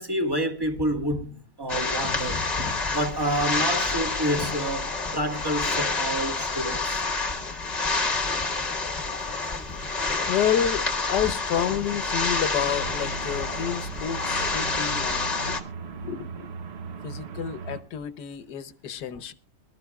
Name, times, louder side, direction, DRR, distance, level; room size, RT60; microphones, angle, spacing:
voice 1, 0.0-7.0, equal, 15° right, 1.5 m, -28 dB
sound 1, 1.7-15.6, left 3 dB, 25° left, 1.2 m, -28 dB
voice 2, 10.1-15.6 16.0-16.5 17.0-19.3, left 9 dB, 80° left, 1.5 m, -29 dB
sound 2, 12.6-17.8, right 5 dB, 45° right, 1.0 m, -38 dB
24.0 x 13.0 x 2.3 m
omnidirectional pair, 1.8 m